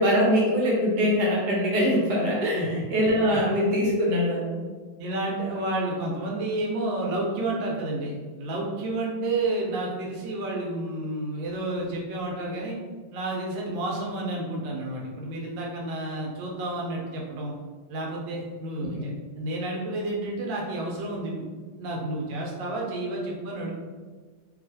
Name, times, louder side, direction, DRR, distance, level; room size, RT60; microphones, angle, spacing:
voice 1, 0.0-4.6 18.8-19.1, equal, 65° right, -3 dB, 1.2 m, -23 dB
voice 2, 5.0-12.8 13.1-17.5 17.9-21.4 21.8-23.7, right 2 dB, 85° right, -2 dB, 1.4 m, -30 dB
3.0 x 2.8 x 2.7 m, 1.4 s
omnidirectional pair, 2.1 m